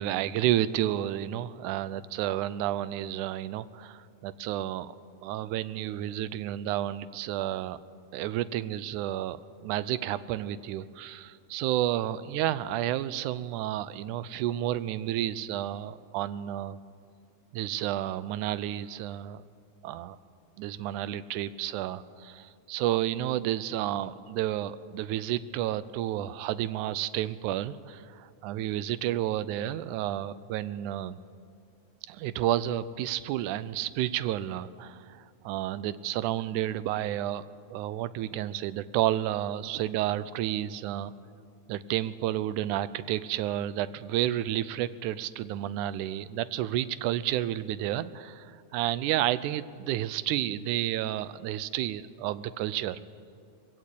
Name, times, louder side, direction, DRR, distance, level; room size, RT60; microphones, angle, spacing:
voice 1, 0.0-4.9 5.2-7.8 8.1-16.8 17.5-19.4 19.8-20.2 20.6-31.2 32.1-41.1 41.7-53.0, right 13 dB, 80° right, 16 dB, 2.0 m, -31 dB
20.5 x 16.5 x 8.3 m, 2.4 s
omnidirectional pair, 3.6 m